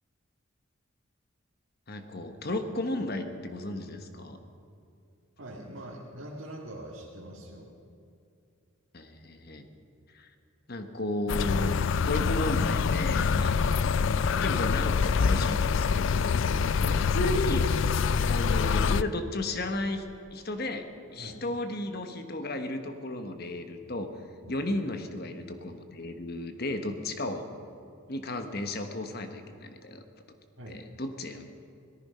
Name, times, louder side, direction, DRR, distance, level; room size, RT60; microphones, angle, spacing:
voice 1, 1.9-4.4 8.9-9.7 10.1-10.3 10.7-11.7 12.1-13.5 14.1-17.7 18.3-20.0 20.3-20.9 21.1-24.1 24.5-27.5 28.1-30.0 30.7-31.5, left 1 dB, 45° left, 7 dB, 1.2 m, -34 dB
voice 2, 5.4-7.7 13.5-13.8 16.8-17.0 21.2-21.4 24.4-24.6 30.6-30.8, right 1 dB, 70° right, -4 dB, 2.0 m, -43 dB
sound 1, 11.3-19.0, left 5 dB, 60° left, 0.4 m, -25 dB
18.0 x 14.0 x 5.6 m, 2.6 s
head